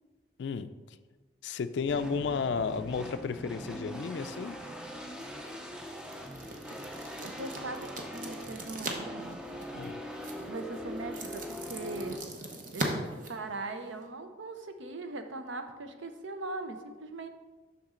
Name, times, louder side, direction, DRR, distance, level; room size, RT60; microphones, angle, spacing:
voice 1, 0.4-0.7 1.4-4.6 9.7-10.0, left 5 dB, 65° left, 11 dB, 0.3 m, -33 dB
sound 1, 1.9-12.2, equal, 5° right, 0.4 m, -42 dB
sound 2, 5.0-14.1, right 2 dB, 40° right, 0.8 m, -41 dB
voice 2, 7.2-9.4 10.5-12.2 12.7-17.3, right 2 dB, 80° right, 7 dB, 0.7 m, -40 dB
7.2 x 5.9 x 3.7 m, 1.3 s
head